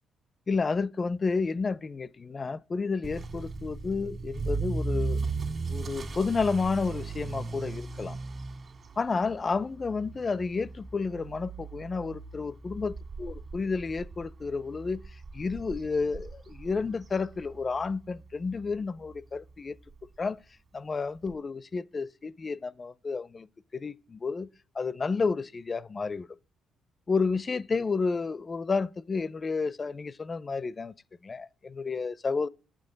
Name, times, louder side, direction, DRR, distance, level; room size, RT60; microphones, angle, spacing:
voice 1, 0.5-5.2 5.7-8.2 9.0-15.0 15.3-19.8 20.2-20.4 20.7-23.5 23.7-24.5 24.7-26.3 27.1-30.9 31.2-32.5, left 4 dB, 35° left, 0.4 m, -31 dB
Motor vehicle (road) / Accelerating revving vroom, 3.0-17.9 18.2-18.6 19.1-19.2 19.5-19.6 19.9-20.0 21.3-21.4, right 3 dB, 45° right, 1.7 m, -37 dB
9.8 x 8.0 x 3.9 m
cardioid pair, 90°, 0 cm